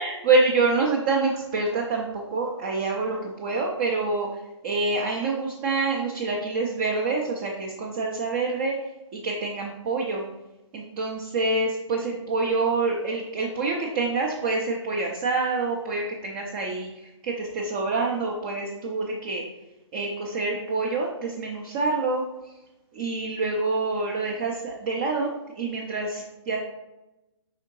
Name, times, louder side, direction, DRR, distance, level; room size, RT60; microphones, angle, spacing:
voice 1, 0.0-8.8 9.1-10.2 10.7-19.4 19.9-22.5 22.9-26.6, right 3 dB, 20° right, -1 dB, 0.4 m, -26 dB
4.9 x 3.7 x 2.9 m, 0.98 s
figure-of-eight pair, 135°, 15 cm